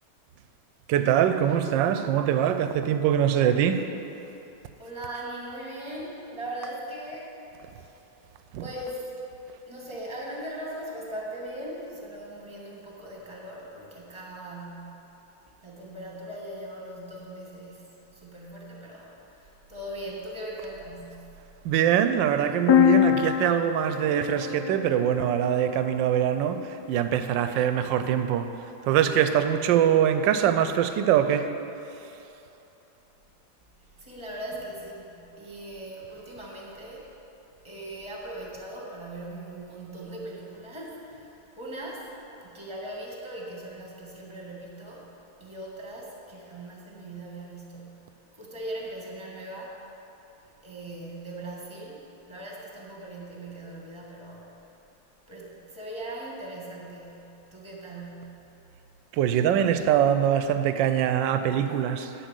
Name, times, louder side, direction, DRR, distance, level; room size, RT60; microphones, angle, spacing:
voice 1, 0.9-3.9 8.5-8.6 21.6-28.5 28.8-31.5 59.1-62.1, right 9 dB, 85° right, 9 dB, 1.3 m, -23 dB
voice 2, 4.8-7.3 7.7-8.0 8.6-9.1 9.7-15.0 15.6-21.3 33.8-37.1 37.6-42.1 42.4-45.1 45.4-49.8 50.6-54.7 55.3-58.4, right 1 dB, 15° right, -4 dB, 1.6 m, -40 dB
sound 1, 22.7-26.4, left 11 dB, 70° left, 1.2 m, -25 dB
10.0 x 4.9 x 8.1 m, 3.0 s
omnidirectional pair, 2.0 m